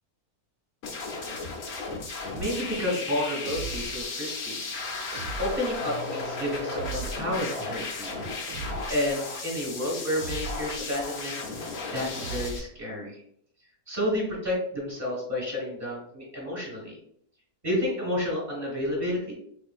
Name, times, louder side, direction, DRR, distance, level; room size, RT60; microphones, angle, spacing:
sound 1, 0.8-12.6, left 3 dB, 55° left, 0.8 m, -35 dB
voice 1, 2.3-4.6 5.4-8.2 8.9-11.4 11.9-13.1 13.9-17.0 17.6-19.5, left 1 dB, 20° right, -3 dB, 1.3 m, -30 dB
sound 2, 3.4-4.1 5.1-5.8 6.7-7.4 8.5-9.1 10.2-10.9 12.2-12.8, right 3 dB, 85° right, 1.1 m, -38 dB
Keyboard (musical), 5.8-8.7, left 4 dB, 75° left, 1.1 m, -49 dB
3.7 x 2.7 x 2.3 m, 0.67 s
omnidirectional pair, 1.6 m